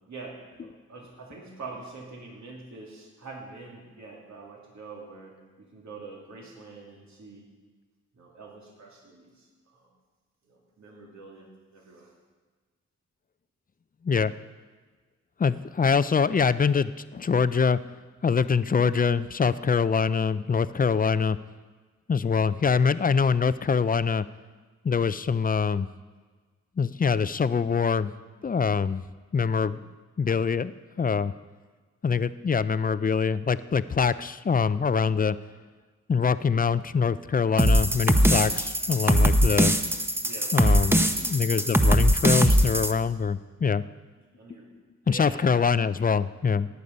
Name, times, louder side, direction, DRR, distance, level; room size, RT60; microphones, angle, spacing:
voice 1, 0.1-7.5 8.1-9.5 9.7-9.9 10.5-12.1 40.2-40.5 41.4-41.6 44.2-44.7 45.0-45.4, right 3 dB, 70° right, -2 dB, 2.8 m, -45 dB
voice 2, 15.4-17.8 18.2-21.4 22.1-24.2 24.8-25.9 26.8-28.1 28.4-29.0 29.3-29.8 30.2-30.7 31.0-31.3 32.0-35.4 36.1-39.7 40.5-43.8 45.1-46.7, left 6 dB, 30° left, 15 dB, 0.5 m, -24 dB
sound 1, 37.6-42.9, equal, 10° right, 0.9 m, -21 dB
18.0 x 8.3 x 5.3 m, 1.4 s
cardioid pair, 70°, 29 cm